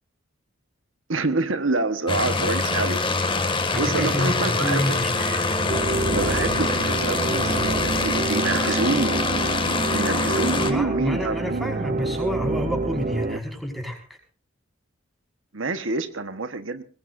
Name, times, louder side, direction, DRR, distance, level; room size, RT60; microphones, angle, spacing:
voice 1, 1.1-3.0 3.7-5.4 6.1-9.2 9.9-12.0 15.5-16.8, right 3 dB, 75° right, 9 dB, 1.3 m, -27 dB
sound 1, 2.1-10.7, left 3 dB, 25° left, 2.1 m, -24 dB
voice 2, 3.7-5.1 10.5-14.0, equal, ahead, 2 dB, 5.2 m, -28 dB
sound 2, 5.7-13.4, right 2 dB, 40° right, 0.7 m, -27 dB
21.5 x 21.5 x 2.6 m, 0.40 s
head